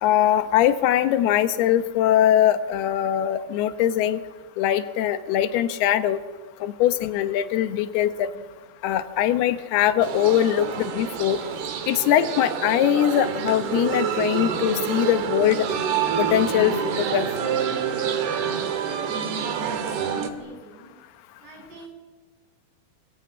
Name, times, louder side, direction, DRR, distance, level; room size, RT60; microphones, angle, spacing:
voice 1, 0.0-4.2 4.6-6.2 6.6-8.3 8.8-11.4 11.9-15.7 16.2-16.7 17.1-17.3, left 11 dB, 75° left, 9 dB, 3.2 m, -21 dB
sound 1, 10.0-20.3, right 7 dB, 70° right, 3.8 m, -27 dB
voice 2, 19.6-20.9 21.4-21.9, right 2 dB, 85° right, 2 dB, 10.0 m, -45 dB
27.5 x 22.0 x 9.6 m, 1.3 s
omnidirectional pair, 4.9 m